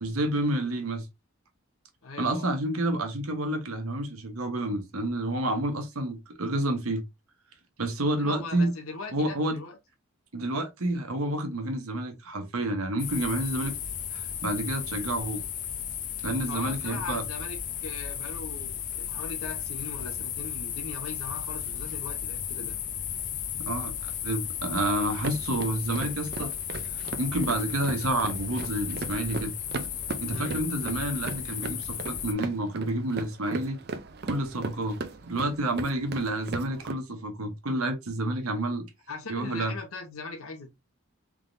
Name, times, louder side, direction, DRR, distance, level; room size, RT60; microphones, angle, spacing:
voice 1, 0.0-1.1 2.2-7.0 7.8-8.7 9.1-9.6 10.3-13.8 14.1-15.4 16.2-17.2 23.7-26.5 27.2-29.5 30.2-33.8 34.3-38.9 39.3-39.7, right 1 dB, 85° right, 1.1 m, -29 dB
voice 2, 2.0-2.5 8.2-9.8 16.5-22.8 30.3-30.6 39.1-40.7, left 3 dB, 80° left, 0.8 m, -40 dB
sound 1, 13.0-32.3, left 9 dB, 35° left, 0.6 m, -35 dB
sound 2, 25.0-36.9, right 3 dB, 50° right, 0.5 m, -38 dB
3.6 x 3.5 x 2.5 m
head